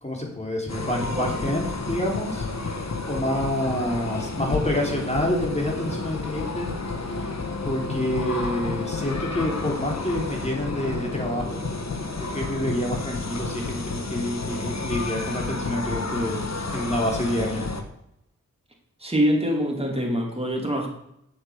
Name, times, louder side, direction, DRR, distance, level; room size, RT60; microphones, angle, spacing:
voice 1, 0.0-2.8 3.0-6.7 7.0-7.3 7.6-11.6 12.2-16.4 16.7-17.7, left 1 dB, 20° left, -1 dB, 3.2 m, -28 dB
sound 1, 0.7-17.8, left 3 dB, 55° left, 1.3 m, -30 dB
voice 2, 0.9-1.6 19.0-20.9, equal, 20° right, 1 dB, 2.7 m, -25 dB
8.1 x 6.5 x 6.5 m, 0.79 s
cardioid pair, 45°, 33 cm